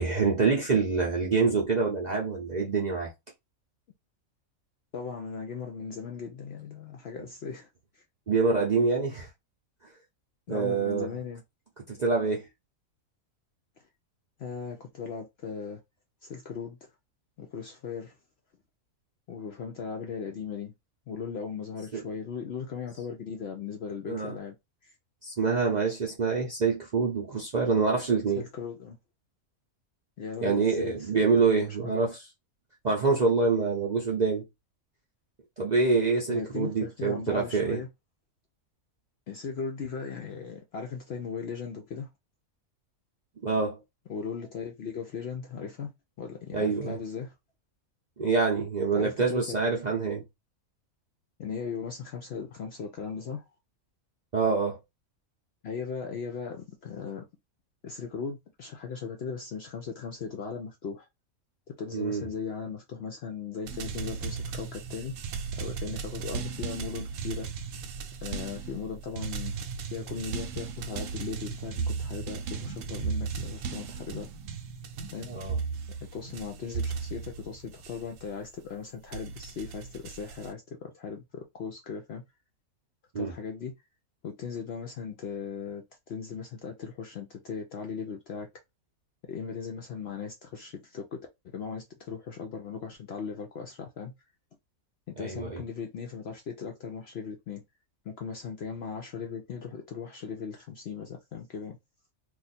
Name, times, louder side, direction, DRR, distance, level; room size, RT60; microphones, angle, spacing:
voice 1, 0.0-3.1 8.3-9.3 10.5-11.1 11.9-12.5 21.9-22.0 24.1-24.3 25.2-28.4 30.4-32.2 32.8-34.5 35.6-37.8 43.4-43.8 46.5-47.0 48.2-50.2 54.3-54.8 61.9-62.3 75.3-75.6 83.1-83.3 95.2-95.6, right 4 dB, 45° right, 0.5 m, -26 dB
voice 2, 4.9-7.7 7.9-8.0 10.5-11.4 14.4-15.8 16.2-16.9 17.4-18.2 19.3-20.7 21.1-24.5 24.8-24.9 28.4-29.0 30.2-31.1 31.5-32.0 36.3-37.9 39.3-42.1 44.1-45.9 46.2-47.3 48.9-49.6 51.4-53.4 55.6-57.3 57.8-61.1 61.7-65.1 65.6-67.5 68.2-69.5 69.9-74.3 75.1-75.3 76.1-82.2 83.2-83.7 84.2-88.5 89.3-91.2 91.4-94.1 95.1-97.6 98.1-101.8, left 6 dB, 65° left, 0.6 m, -38 dB
sound 1, 63.7-78.5 79.1-80.5, right 5 dB, 70° right, 0.9 m, -36 dB
2.4 x 2.4 x 4.1 m
omnidirectional pair, 1.5 m